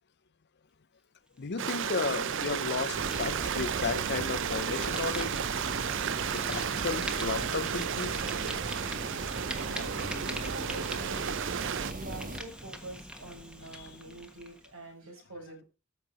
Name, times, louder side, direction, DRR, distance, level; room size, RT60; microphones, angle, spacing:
voice 1, 1.4-5.4 6.3-8.2 13.7-14.2, left 4 dB, 55° left, 0.7 m, -34 dB
Fire, 1.4-14.7, equal, 5° right, 1.4 m, -44 dB
Stream, 1.6-11.9, right 8 dB, 65° right, 0.6 m, -33 dB
sound 1, 2.9-12.4, right 2 dB, 40° right, 1.4 m, -39 dB
voice 2, 9.7-11.5 11.8-15.6, right 2 dB, 80° right, 4.9 m, -45 dB
14.0 x 5.9 x 4.3 m
head